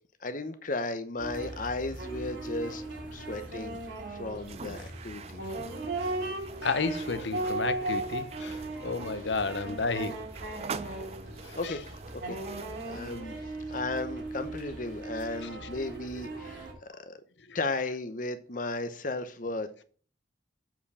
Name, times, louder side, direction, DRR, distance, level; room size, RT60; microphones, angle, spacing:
voice 1, 0.2-2.8 3.1-3.8 4.1-5.4 11.5-11.8 12.3-13.4 13.7-16.7 17.0-17.2 17.5-19.8, left 2 dB, 45° left, 0.9 m, -35 dB
sound 1, 1.2-16.7, right 2 dB, 85° right, 2.7 m, -37 dB
sound 2, 4.4-13.3, right 5 dB, 35° right, 0.4 m, -45 dB
voice 2, 6.6-10.2 11.4-11.8 15.4-15.5 17.5-17.6, left 4 dB, 75° left, 0.8 m, -32 dB
7.5 x 4.6 x 7.0 m
head